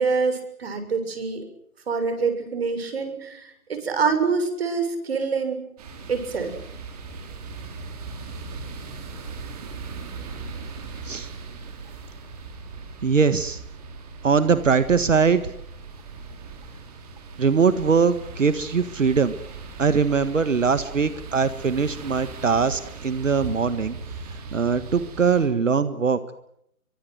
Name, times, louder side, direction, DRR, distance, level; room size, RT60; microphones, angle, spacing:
voice 1, 0.0-1.4 1.9-5.6 6.1-6.5, right 5 dB, 45° right, 7 dB, 6.9 m, -25 dB
sound 1, 5.8-25.5, right 4 dB, 25° right, 4.7 m, -39 dB
voice 2, 13.0-13.6 14.2-15.5 17.4-19.4 19.8-24.0 24.5-26.2, right 5 dB, 60° right, 12 dB, 1.7 m, -21 dB
25.0 x 24.0 x 7.9 m, 0.74 s
figure-of-eight pair, 160°, 43 cm